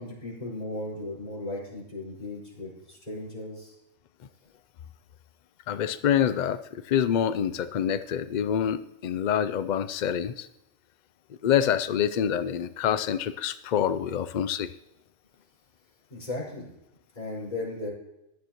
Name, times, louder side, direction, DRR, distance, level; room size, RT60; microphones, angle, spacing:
voice 1, 0.0-3.8 16.1-16.7 17.1-17.9, left 2 dB, 30° left, -5 dB, 5.2 m, -36 dB
voice 2, 5.7-10.5 11.4-14.7, left 9 dB, 70° left, 12 dB, 0.4 m, -26 dB
15.5 x 12.0 x 3.0 m, 0.88 s
omnidirectional pair, 1.3 m